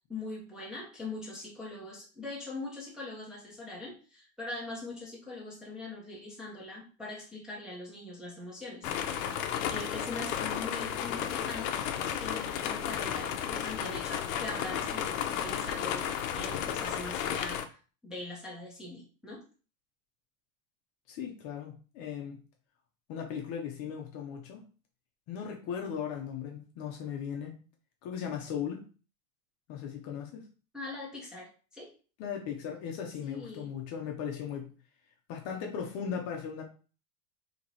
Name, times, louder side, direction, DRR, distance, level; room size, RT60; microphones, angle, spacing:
voice 1, 0.1-8.9 9.7-11.8 12.2-16.1 16.3-17.6 18.0-19.4 30.7-31.9 33.2-33.7, left 2 dB, ahead, -6 dB, 0.7 m, -42 dB
sound 1, 8.8-17.6, left 9 dB, 80° left, 0.7 m, -33 dB
voice 2, 21.1-22.4 23.1-24.6 25.3-27.6 28.0-28.9 29.7-30.4 32.2-34.7 35.3-36.6, left 7 dB, 35° left, 1 dB, 0.7 m, -37 dB
3.0 x 2.9 x 4.0 m, 0.37 s
supercardioid pair, 170°, 41 cm